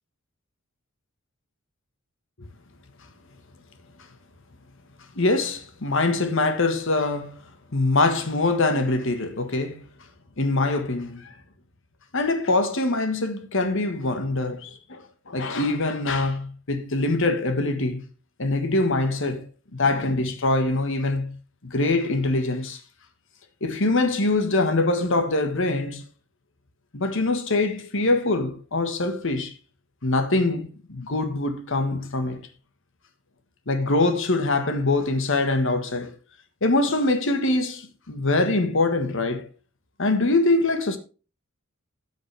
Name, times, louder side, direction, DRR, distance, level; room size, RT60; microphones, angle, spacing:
voice 1, 5.1-7.4 7.7-9.8 10.4-11.3 12.1-18.1 18.4-19.4 19.7-21.3 21.6-22.8 23.6-26.0 26.9-29.5 30.0-32.4 33.7-36.1 36.6-39.5 40.0-41.0, left 2 dB, 60° left, 1.5 m, -23 dB
13.5 x 7.5 x 3.4 m
head